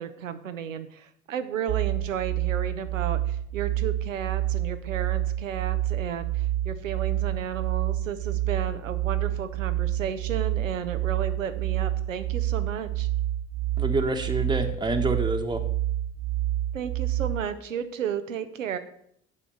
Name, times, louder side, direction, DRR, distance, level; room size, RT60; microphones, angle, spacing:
voice 1, 0.0-13.1 16.7-18.8, right 8 dB, 90° right, 9 dB, 0.8 m, -33 dB
sound 1, 1.7-17.5, right 13 dB, 40° right, 0.4 m, -28 dB
voice 2, 13.8-15.6, right 2 dB, 10° right, 4 dB, 1.2 m, -27 dB
8.5 x 4.9 x 6.9 m, 0.70 s
hypercardioid pair, 55°, 38 cm